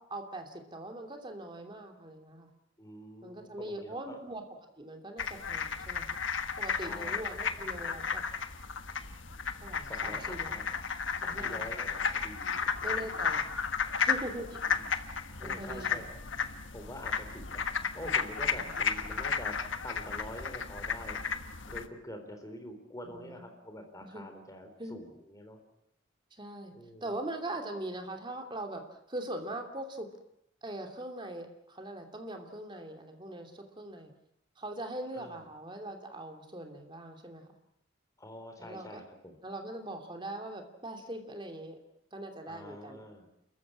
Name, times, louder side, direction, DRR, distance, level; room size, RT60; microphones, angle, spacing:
voice 1, 0.0-2.5 3.2-4.4 4.8-6.2 6.6-8.2 9.6-10.7 11.2-11.7 12.8-13.4 14.0-14.6 15.4-16.0 18.5-18.7 23.1-23.5 24.0-24.2 24.8-25.0 26.4-26.7 27.0-30.1 30.6-34.1 34.6-37.5 38.6-39.0 39.4-41.8 42.1-43.0, right 1 dB, 25° right, 4 dB, 2.9 m, -41 dB
voice 2, 2.8-4.2 6.8-7.3 9.8-10.6 11.2-13.0 14.7-14.8 15.4-16.0 16.7-17.6 17.9-19.6 19.8-21.2 21.7-25.6 26.7-27.1 35.1-35.4 38.2-39.4 42.5-43.3, left 1 dB, 15° left, 5 dB, 3.9 m, -46 dB
sound 1, 5.2-21.9, left 6 dB, 75° left, 1.4 m, -34 dB
29.5 x 14.5 x 8.7 m, 0.79 s
head